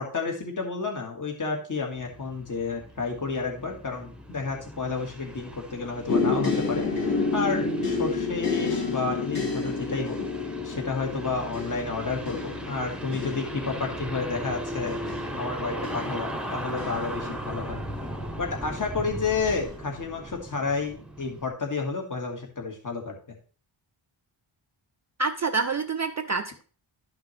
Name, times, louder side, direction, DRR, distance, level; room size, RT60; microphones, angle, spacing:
voice 1, 0.0-10.2 10.6-15.0 15.4-17.8 18.4-23.2, left 4 dB, 40° left, 1 dB, 1.8 m, -31 dB
sound 1, 1.9-21.5, equal, ahead, 0.9 m, -38 dB
sound 2, 6.1-17.9 18.6-19.1 19.5-19.7, left 4 dB, 70° left, 3.6 m, -30 dB
voice 2, 25.2-26.6, right 4 dB, 40° right, 8 dB, 0.4 m, -27 dB
12.0 x 5.9 x 3.2 m, 0.40 s
wide cardioid pair, 130°, 48 cm